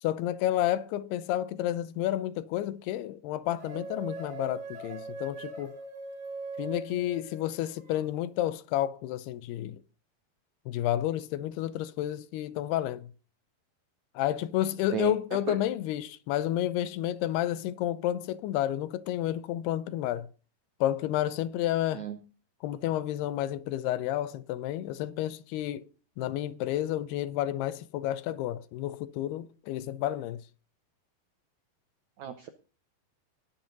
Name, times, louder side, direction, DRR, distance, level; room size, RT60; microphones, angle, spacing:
voice 1, 0.0-5.8 6.6-9.8 10.7-13.1 14.2-20.3 20.8-22.0 22.6-25.9 26.2-30.4, left 13 dB, 85° left, 2.7 m, -30 dB
sound 1, 3.5-8.0, right 3 dB, 60° right, 4.3 m, -41 dB
voice 2, 32.2-32.5, right 8 dB, 80° right, 1.6 m, -33 dB
19.5 x 7.6 x 4.0 m
omnidirectional pair, 4.5 m